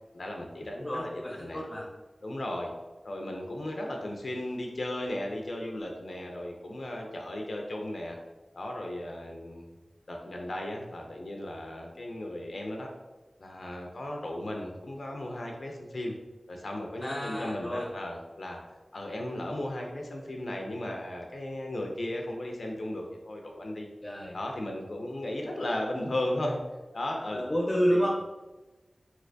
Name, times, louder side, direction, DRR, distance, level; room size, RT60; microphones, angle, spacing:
voice 1, 0.1-1.1 1.4-1.6 2.2-2.7 3.0-8.2 8.5-9.6 10.1-12.9 13.4-16.1 16.5-18.6 18.9-23.9 24.3-26.6 26.9-27.4 27.9-28.1, left 1 dB, 75° left, 1 dB, 0.4 m, -35 dB
voice 2, 0.7-1.9 17.0-17.9 24.0-24.4 27.3-28.1, equal, 25° left, -3 dB, 0.6 m, -30 dB
3.2 x 2.9 x 2.5 m, 1.1 s
wide cardioid pair, 80°, 0 cm